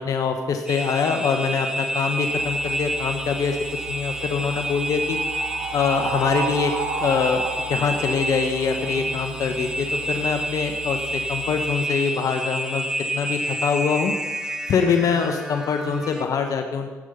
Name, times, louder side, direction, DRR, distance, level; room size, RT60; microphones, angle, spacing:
voice 1, 0.0-3.6 3.9-5.2 5.7-6.7 7.0-7.4 7.7-11.0 11.3-12.8 13.1-14.1 14.7-16.9, left 6 dB, 65° left, 5 dB, 1.3 m, -24 dB
sound 1, 0.7-16.2, right 1 dB, 10° right, 1.6 m, -29 dB
sound 2, 2.3-11.7, right 4 dB, 90° right, 2.4 m, -34 dB
14.5 x 8.6 x 5.3 m, 1.2 s
supercardioid pair, 60°, 7 cm